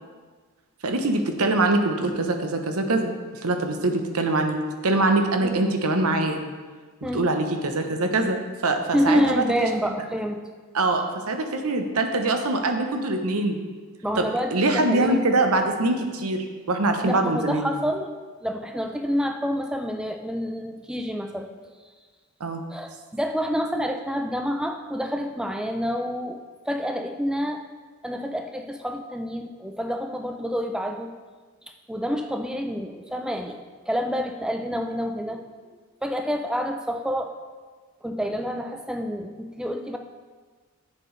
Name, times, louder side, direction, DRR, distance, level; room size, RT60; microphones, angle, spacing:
voice 1, 0.8-3.1 3.4-4.6 4.8-6.4 7.0-9.4 10.7-13.6 14.2-17.7 22.4-22.6, right 2 dB, 90° right, 5 dB, 0.9 m, -23 dB
voice 2, 8.9-10.4 14.0-15.2 17.0-18.1 18.4-21.5 22.7-27.6 28.0-31.1 31.9-33.6 33.9-35.4 36.0-37.3 38.0-40.0, equal, 5° right, 4 dB, 0.5 m, -28 dB
10.0 x 7.6 x 3.3 m, 1.4 s
head